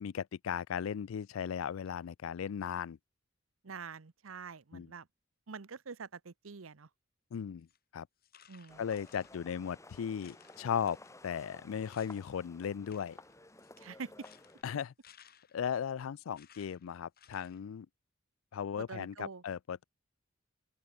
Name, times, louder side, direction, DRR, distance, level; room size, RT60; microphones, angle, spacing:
voice 1, 0.0-3.0 4.7-4.9 7.3-7.7 7.9-8.1 8.8-11.0 11.2-13.2 14.6-14.9 15.5-17.9 18.5-19.8, left 8 dB, 85° left, 0.4 m, -36 dB
voice 2, 3.6-5.1 5.5-6.9 8.5-8.8 13.8-14.3 18.8-19.4, right 5 dB, 90° right, 0.8 m, -45 dB
sound 1, 7.6-7.8 8.2-9.8 10.2-12.3 12.6-15.7 16.4-17.6, left 8 dB, 50° left, 3.4 m, -62 dB
sound 2, 8.7-14.6, left 2 dB, 15° left, 6.9 m, -56 dB
open air
head